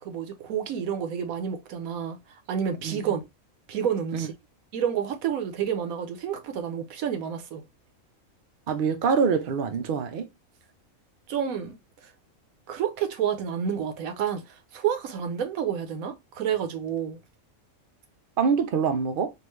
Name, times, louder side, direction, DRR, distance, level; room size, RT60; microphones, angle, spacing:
voice 1, 0.0-3.2 3.7-4.3 4.7-7.6 11.3-12.1 12.7-17.2, right 8 dB, 80° right, 1.1 m, -29 dB
voice 2, 8.7-10.3 18.4-19.3, right 6 dB, 55° right, 0.6 m, -25 dB
3.6 x 2.5 x 3.1 m
omnidirectional pair, 1.4 m